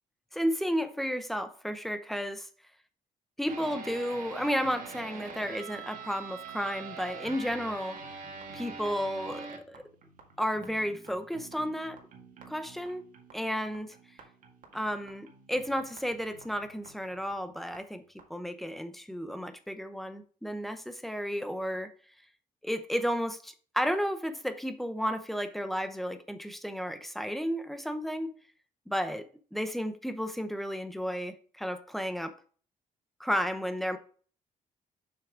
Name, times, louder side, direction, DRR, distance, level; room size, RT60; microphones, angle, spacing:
voice 1, 0.3-2.5 3.4-8.0 8.5-9.9 10.4-12.0 12.5-13.0 13.3-13.9 14.7-18.0 18.3-21.9 22.6-28.3 28.9-32.4 33.2-34.0, equal, ahead, 0.7 m, -33 dB
sound 1, 3.5-17.8 18.2-18.3, right 5 dB, 65° right, 1.8 m, -46 dB
7.0 x 5.9 x 3.7 m
cardioid pair, 140°, 15 cm